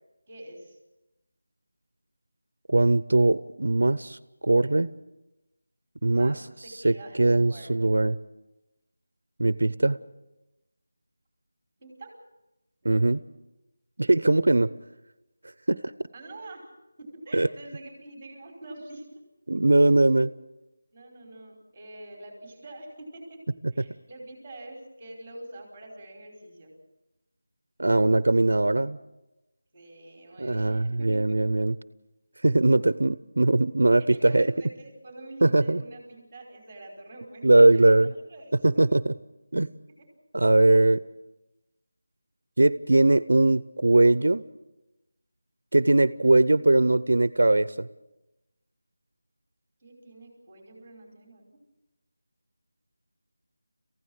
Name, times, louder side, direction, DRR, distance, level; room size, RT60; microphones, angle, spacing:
voice 1, 0.3-0.8 6.1-7.7 11.8-12.2 12.8-13.0 16.1-16.6 17.0-19.2 20.9-23.4 23.7-26.7 29.7-31.4 33.9-38.8 49.8-51.6, right 1 dB, 10° right, 0 dB, 4.9 m, -45 dB
voice 2, 2.7-4.2 4.4-4.9 6.0-6.4 6.8-8.2 9.4-10.0 12.8-13.2 14.0-14.7 15.7-15.8 17.3-17.5 19.5-20.3 27.8-29.0 30.4-31.7 32.4-34.5 35.4-35.8 37.4-38.1 38.6-39.1 39.5-39.7 40.3-41.0 42.6-44.4 45.7-47.9, right 2 dB, 80° right, 16 dB, 0.7 m, -20 dB
27.5 x 15.5 x 6.4 m, 1.0 s
figure-of-eight pair, 175°, 0 cm